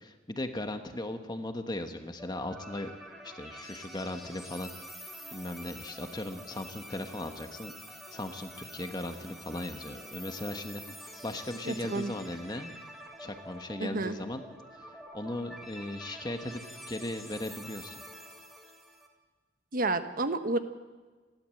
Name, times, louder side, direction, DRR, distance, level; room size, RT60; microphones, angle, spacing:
voice 1, 0.0-2.9 3.2-4.7 5.3-7.7 8.1-12.7 13.2-14.4 14.7-18.0, left 1 dB, 20° left, 7 dB, 1.4 m, -38 dB
sound 1, 2.2-19.1, equal, ahead, 2.4 m, -47 dB
voice 2, 11.7-12.1 13.8-14.1 19.7-20.6, right 2 dB, 45° right, 9 dB, 1.1 m, -30 dB
30.0 x 12.5 x 7.8 m, 1.4 s
head